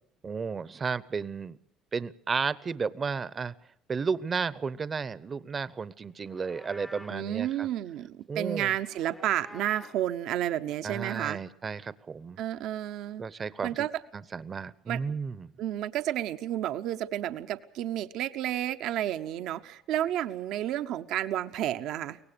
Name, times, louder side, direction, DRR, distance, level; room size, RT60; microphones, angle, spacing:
voice 1, 0.2-1.6 1.9-3.5 3.9-7.7 8.3-8.7 10.8-12.4 13.2-13.9 14.1-15.5, right 5 dB, 30° right, 17 dB, 0.8 m, -33 dB
Livestock farm animals working animals, 6.1-7.3 8.6-10.1, left 1 dB, 10° left, 0.7 m, -49 dB
voice 2, 7.1-11.4 12.4-13.2 13.6-14.0 14.9-15.2 15.6-22.2, right 12 dB, 70° right, 9 dB, 0.9 m, -31 dB
23.5 x 18.5 x 6.9 m, 0.72 s
cardioid pair, 110°, 0 cm